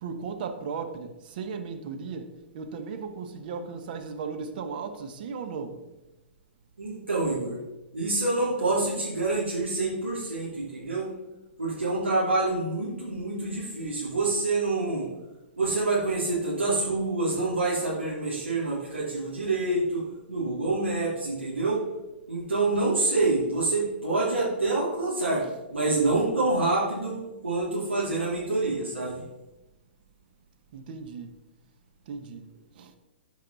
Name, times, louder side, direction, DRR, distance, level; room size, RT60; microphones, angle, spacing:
voice 1, 0.0-5.8 30.7-31.3 32.1-32.5 32.7-32.9, right 5 dB, 50° right, 1.1 m, -36 dB
voice 2, 6.8-7.6 7.9-11.1 11.6-15.1 15.6-21.8 22.3-29.2, right 2 dB, 85° right, 2.5 m, -27 dB
13.0 x 4.8 x 4.0 m
figure-of-eight pair, 115°, 6 cm